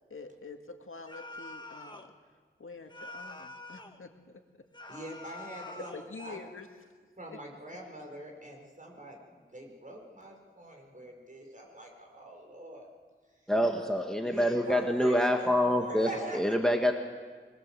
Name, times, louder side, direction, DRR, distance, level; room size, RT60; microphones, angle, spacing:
voice 1, 0.1-2.1 2.6-4.4 5.6-6.7 7.3-7.4, left 4 dB, 90° left, 4 dB, 2.0 m, -46 dB
sound 1, 1.1-2.1 2.9-4.0 4.7-6.1, left 2 dB, 20° left, 1.6 m, -45 dB
voice 2, 4.9-6.5 7.2-12.9 13.4-13.5 14.2-16.6, right 1 dB, 40° right, 1 dB, 5.5 m, -44 dB
voice 3, 13.5-16.9, equal, 5° left, 3 dB, 1.6 m, -26 dB
25.0 x 20.0 x 7.6 m, 1.5 s
wide cardioid pair, 75°, 21 cm